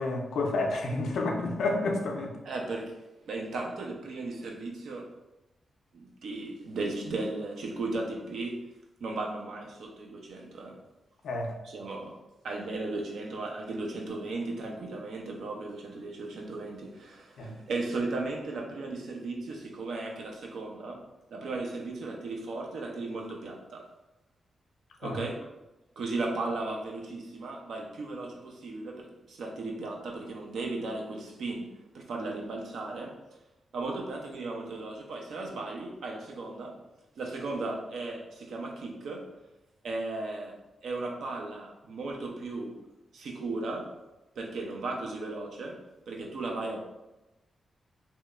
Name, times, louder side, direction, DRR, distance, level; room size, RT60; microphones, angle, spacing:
voice 1, 0.0-2.3 11.2-11.5 17.4-17.6 25.0-25.2, left 2 dB, 80° left, 2 dB, 0.4 m, -30 dB
voice 2, 2.4-3.0 3.2-5.1 5.9-8.6 9.0-10.8 11.6-12.2 12.4-21.0 21.3-23.8 25.0-25.4 26.0-33.2 33.7-36.8 37.2-39.3 39.8-40.5 40.8-42.8 43.1-43.9 44.4-45.8 46.1-46.8, right 2 dB, 80° right, 0 dB, 0.4 m, -36 dB
2.8 x 2.1 x 2.3 m, 0.99 s
supercardioid pair, 45°, 0 cm